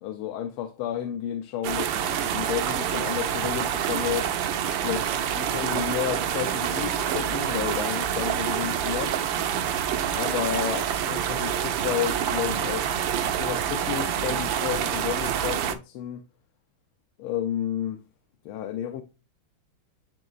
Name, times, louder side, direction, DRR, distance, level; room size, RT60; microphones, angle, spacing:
voice 1, 0.0-4.3 4.8-9.2 10.2-16.2 17.2-18.0 18.4-19.0, left 10 dB, 85° left, 1.5 m, -31 dB
sound 1, 1.6-15.8, right 9 dB, 70° right, 1.4 m, -27 dB
10.5 x 3.8 x 2.4 m
omnidirectional pair, 2.3 m